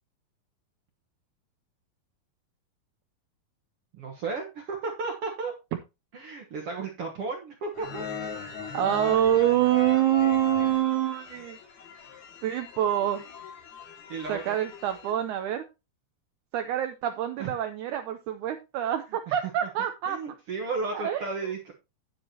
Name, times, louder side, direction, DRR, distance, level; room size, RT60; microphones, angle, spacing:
voice 1, 3.9-5.5 6.1-8.1 14.1-14.5 17.4-17.5 19.3-19.4 20.1-21.7, right 4 dB, 60° right, 2 dB, 1.5 m, -34 dB
sound 1, 7.7-15.1, left 6 dB, 85° left, 4.2 m, -39 dB
voice 2, 8.7-11.6 12.4-13.2 14.3-15.6 16.5-20.2 20.9-21.3, right 12 dB, 80° right, 7 dB, 1.8 m, -26 dB
9.8 x 9.6 x 2.8 m, 0.26 s
omnidirectional pair, 4.3 m